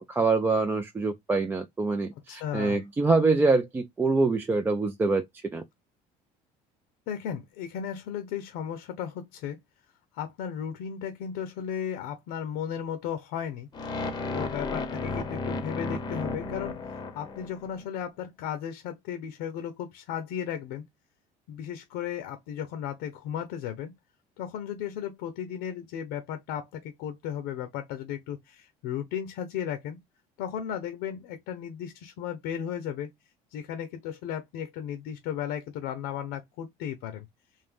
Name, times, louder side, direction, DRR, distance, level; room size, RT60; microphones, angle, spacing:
voice 1, 0.0-5.2 5.5-5.6, right 3 dB, 15° right, 0.3 m, -25 dB
voice 2, 2.3-2.8 7.1-9.6 10.1-13.7 14.3-16.8 17.1-20.8 21.5-23.9 24.4-30.0 30.4-33.1 33.5-37.3, left 9 dB, 85° left, 0.8 m, -35 dB
sound 1, 13.7-17.8, left 3 dB, 25° left, 0.7 m, -33 dB
3.7 x 2.6 x 3.5 m
cardioid pair, 150°, 16 cm